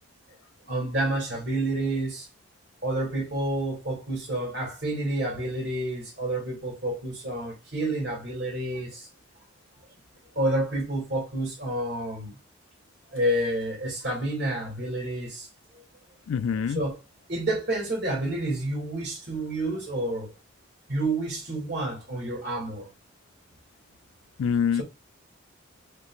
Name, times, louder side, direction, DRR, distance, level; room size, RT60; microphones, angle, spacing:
voice 1, 0.7-2.3 2.8-9.1 10.4-12.4 13.1-15.5 16.7-17.0 17.3-20.3 20.9-22.9 24.7-24.8, right 1 dB, 55° right, 2.1 m, -29 dB
voice 2, 16.3-16.8 24.4-24.8, left 7 dB, 90° left, 0.4 m, -25 dB
5.3 x 3.2 x 2.4 m
head